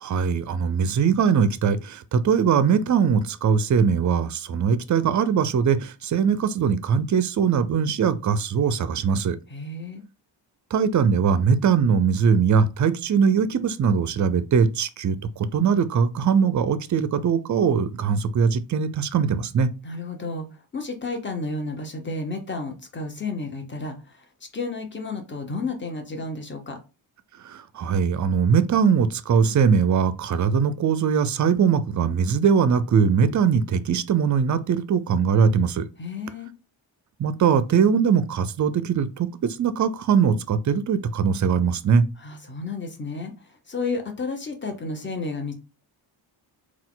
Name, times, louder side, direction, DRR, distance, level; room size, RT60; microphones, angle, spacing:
voice 1, 0.0-9.4 10.7-19.7 27.4-35.9 37.2-42.0, right 6 dB, 40° right, 0.4 m, -21 dB
voice 2, 9.5-10.0 19.8-20.5 20.7-24.2 24.5-26.8 36.0-36.5 42.2-45.6, left 3 dB, 25° left, 1.0 m, -32 dB
4.1 x 2.4 x 3.8 m
wide cardioid pair, 125°, 46 cm